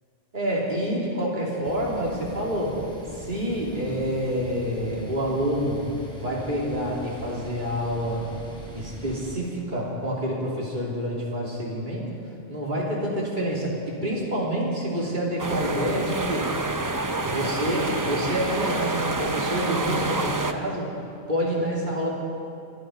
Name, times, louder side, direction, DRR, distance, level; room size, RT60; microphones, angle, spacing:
voice 1, 0.3-2.8 3.1-5.8 6.2-8.3 8.7-12.1 12.5-16.5 17.2-20.9 21.3-22.1, equal, 45° right, -4 dB, 3.3 m, -27 dB
sound 1, 1.6-9.3, right 1 dB, 5° left, 3.1 m, -42 dB
sound 2, 15.4-20.5, right 3 dB, 25° right, 0.5 m, -28 dB
24.5 x 11.0 x 5.2 m, 2.6 s
omnidirectional pair, 1.2 m